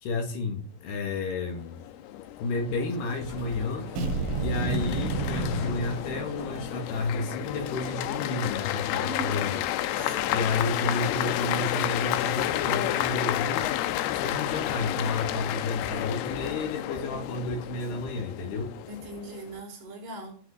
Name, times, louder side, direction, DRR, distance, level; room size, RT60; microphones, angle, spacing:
voice 1, 0.0-1.8 2.4-3.9 4.4-9.5 10.3-13.7 14.1-18.7, left 3 dB, 65° left, 3.6 m, -31 dB
sound 1, 1.4-19.6, left 13 dB, 90° left, 2.3 m, -31 dB
sound 2, 2.9-16.7, equal, 15° right, 2.2 m, -50 dB
sound 3, 4.0-6.7, right 3 dB, 85° right, 4.5 m, -30 dB
voice 2, 9.0-9.6 10.0-10.6 18.9-20.3, right 1 dB, 65° right, 5.7 m, -40 dB
17.0 x 6.1 x 6.6 m
omnidirectional pair, 5.6 m